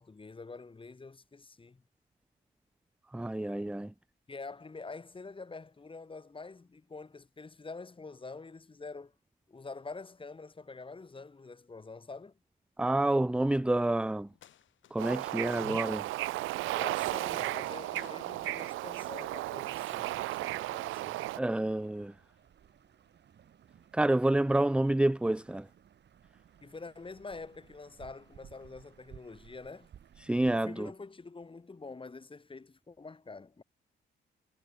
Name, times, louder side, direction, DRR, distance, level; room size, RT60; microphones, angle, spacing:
voice 1, 0.0-1.8 4.3-9.1 9.5-12.4 16.8-21.3 26.6-29.9 30.5-33.6, left 3 dB, 25° left, 7.6 m, -46 dB
voice 2, 3.1-3.9 12.8-14.3 14.9-16.1 21.4-22.1 23.9-25.7 30.2-30.9, right 1 dB, 5° right, 0.7 m, -28 dB
sound 1, 14.3-15.2 15.5-17.7 18.0-19.3 19.7-21.6 22.2-23.1 24.1-24.2 24.8-25.8, left 11 dB, 75° left, 6.8 m, -60 dB
Bird / Ocean, 15.0-21.4, right 17 dB, 85° right, 0.6 m, -34 dB
sound 2, 20.6-30.6, right 9 dB, 60° right, 5.9 m, -59 dB
cardioid pair, 90°, 20 cm